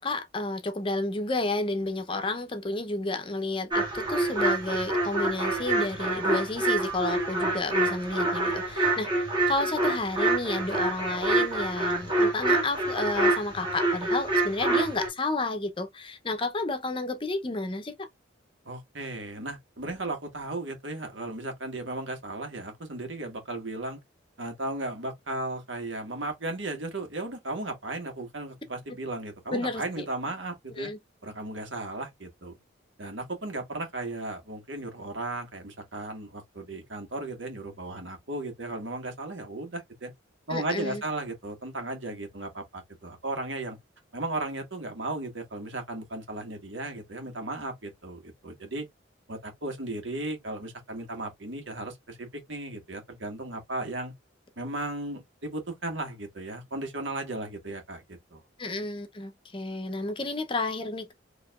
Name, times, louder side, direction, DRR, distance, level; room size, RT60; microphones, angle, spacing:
voice 1, 0.0-9.1 9.5-18.1 29.5-30.0 30.8-31.0 40.5-41.0 58.6-61.1, left 2 dB, 25° left, 0.6 m, -31 dB
sound 1, 3.7-15.1, right 2 dB, 25° right, 1.7 m, -26 dB
voice 2, 18.6-24.0 24.4-30.9 31.2-32.5 33.0-40.1 40.5-43.8 44.1-48.9 49.3-54.1 54.6-58.0 58.3-58.4, right 2 dB, 75° right, 1.7 m, -35 dB
4.9 x 3.0 x 2.4 m
head